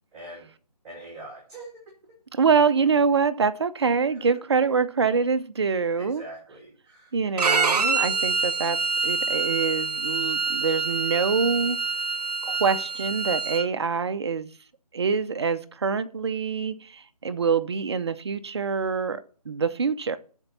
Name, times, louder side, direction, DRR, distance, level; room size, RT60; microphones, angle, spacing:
voice 1, 0.1-0.5 0.8-1.8 4.1-4.3 6.0-7.1, right 1 dB, 20° right, 2.4 m, -43 dB
voice 2, 2.3-6.2 7.1-11.8 12.4-14.5 14.9-19.2 19.5-20.2, right 5 dB, 40° right, 0.6 m, -25 dB
Bowed string instrument, 7.4-13.6, right 4 dB, 75° right, 0.9 m, -26 dB
13.0 x 4.5 x 5.6 m
figure-of-eight pair, 160°, 21 cm